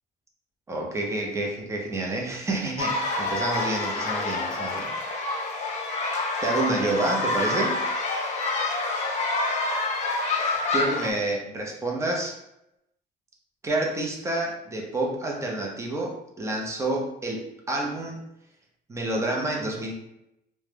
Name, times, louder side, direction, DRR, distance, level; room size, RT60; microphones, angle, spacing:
voice 1, 0.7-4.9 6.4-7.8 10.7-12.4 13.6-18.2 18.9-19.9, right 2 dB, 15° right, -1 dB, 0.6 m, -28 dB
sound 1, 2.8-11.1, left 2 dB, 45° left, 0.5 m, -27 dB
2.3 x 2.1 x 3.3 m, 0.83 s
cardioid pair, 110°, 17 cm